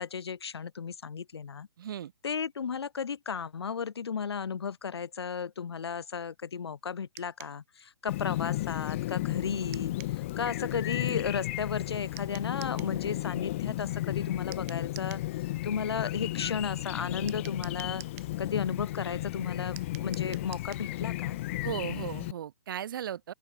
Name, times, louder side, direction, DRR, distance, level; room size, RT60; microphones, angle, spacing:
voice 1, 0.0-1.7 2.2-9.9 10.4-15.2 15.6-18.0 18.4-21.4, left 6 dB, 75° left, 1.3 m, -34 dB
voice 2, 1.8-2.1 21.6-23.3, right 10 dB, 55° right, 2.2 m, -36 dB
sound 1, 7.2-7.6 9.7-10.2 12.2-13.0 14.5-15.3 17.3-18.3 19.8-20.9, right 22 dB, 35° right, 1.7 m, -48 dB
Chirp tweet, 8.1-22.3, left 17 dB, 30° left, 0.4 m, -34 dB
open air
hypercardioid pair, 145°, 13 cm